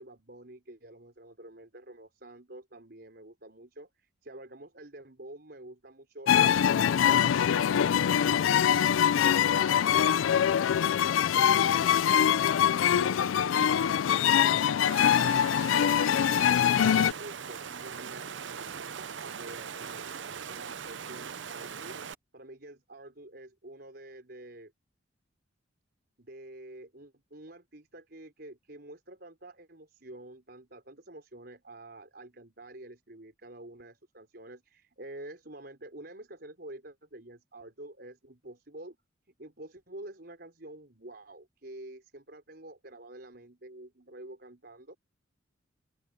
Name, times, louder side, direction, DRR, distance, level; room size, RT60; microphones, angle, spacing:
voice 1, 0.0-15.9 16.3-22.0 22.3-24.7 26.2-39.0 39.3-45.0, right 1 dB, 55° right, 5.3 m, -48 dB
sound 1, 6.3-17.1, left 9 dB, 85° left, 0.3 m, -23 dB
Water, 14.8-22.1, right 7 dB, 70° right, 0.7 m, -40 dB
open air
head